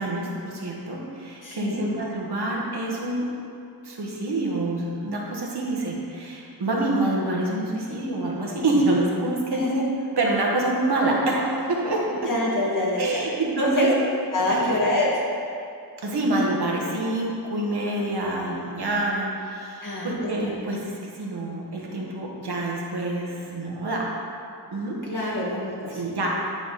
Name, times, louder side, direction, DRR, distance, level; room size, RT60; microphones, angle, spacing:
voice 1, 0.0-3.2 3.8-9.8 10.2-12.3 13.0-13.9 14.5-14.7 16.0-24.1 24.7-25.4 25.9-26.3, right 2 dB, 75° right, -2 dB, 1.5 m, -26 dB
voice 2, 1.4-1.8 9.5-9.7 12.3-13.1 13.6-13.9 14.3-15.1 19.8-20.6 25.1-26.0, left 1 dB, 50° left, -5 dB, 2.0 m, -25 dB
10.5 x 4.9 x 4.1 m, 2.5 s
wide cardioid pair, 90°, 40 cm